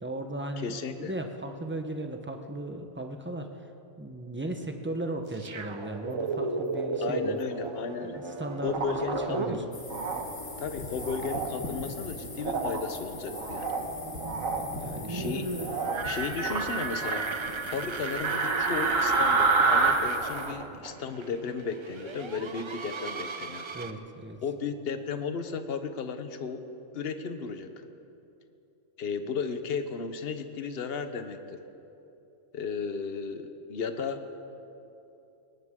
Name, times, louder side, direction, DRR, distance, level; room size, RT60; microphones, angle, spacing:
voice 1, 0.0-3.7 4.0-7.4 8.2-9.6 14.6-15.1 23.7-24.4, right 1 dB, 10° right, 5 dB, 0.8 m, -36 dB
voice 2, 0.6-1.1 7.0-8.2 8.6-9.6 10.6-13.7 15.1-15.5 16.0-17.3 17.7-23.7 24.4-26.6 26.9-27.9 29.0-31.6 32.5-34.2, left 5 dB, 50° left, 8 dB, 1.1 m, -34 dB
sound 1, 5.3-10.3 10.6-10.7 13.1-23.9, right 3 dB, 40° right, 0.4 m, -36 dB
sound 2, 8.6-9.2 9.9-10.2 11.0-11.5 12.4-12.8 13.3-13.8 14.2-14.6 15.6-16.0 16.4-17.3 18.2-19.9, right 4 dB, 85° right, 1.7 m, -27 dB
sound 3, 9.7-20.5, left 2 dB, 80° left, 2.7 m, -42 dB
21.0 x 18.5 x 3.7 m, 2.9 s
omnidirectional pair, 1.4 m